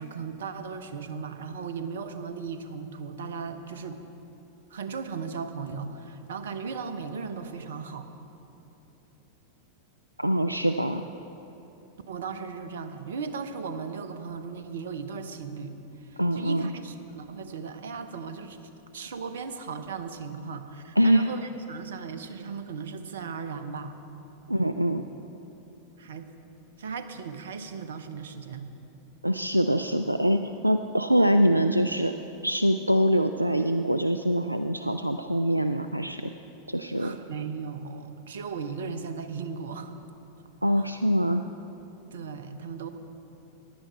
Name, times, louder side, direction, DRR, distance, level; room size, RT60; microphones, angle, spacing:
voice 1, 0.0-4.0 4.7-8.1 12.1-15.7 16.0-18.6 18.9-23.9 26.0-26.3 26.8-28.7 37.0-39.9 40.8-40.9 42.1-42.9, right 5 dB, 60° right, 9 dB, 0.8 m, -37 dB
voice 2, 10.2-11.0 16.2-16.7 21.0-21.3 24.5-25.1 29.2-32.1 32.4-36.3 36.7-37.2 40.6-41.4, equal, 85° right, 8 dB, 0.3 m, -24 dB
15.0 x 10.5 x 4.5 m, 3.0 s
figure-of-eight pair, 90°, 0 cm